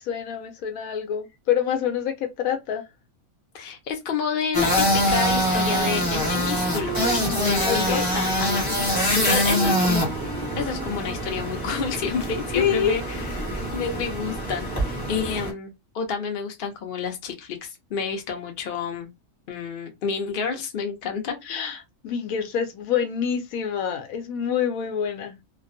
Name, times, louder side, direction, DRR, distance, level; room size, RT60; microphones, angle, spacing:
voice 1, 0.0-2.8 7.6-8.1 12.6-12.9 21.4-25.4, left 8 dB, 75° left, 1.0 m, -26 dB
voice 2, 3.5-8.9 9.2-10.1 10.6-19.1 19.5-21.4, left 6 dB, 50° left, 0.7 m, -29 dB
sound 1, 4.5-15.5, equal, 15° left, 1.0 m, -24 dB
Wind instrument woodwind instrument, 5.4-7.5 7.9-8.9 9.2-11.4, right 6 dB, 65° right, 0.6 m, -37 dB
2.4 x 2.2 x 2.5 m
omnidirectional pair, 1.6 m